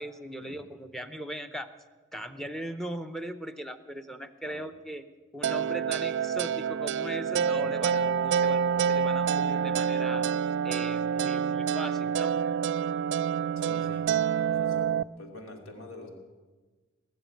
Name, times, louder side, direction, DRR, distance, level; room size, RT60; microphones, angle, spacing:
voice 1, 0.0-1.7 2.1-5.1 5.3-10.3 10.6-12.3, right 1 dB, ahead, 10 dB, 0.7 m, -39 dB
sound 1, 5.4-15.0, right 7 dB, 55° right, 0.4 m, -27 dB
voice 2, 13.6-14.1 14.3-14.9 15.2-16.1, left 2 dB, 75° left, 2 dB, 2.7 m, -45 dB
19.5 x 7.1 x 9.3 m, 1.3 s
head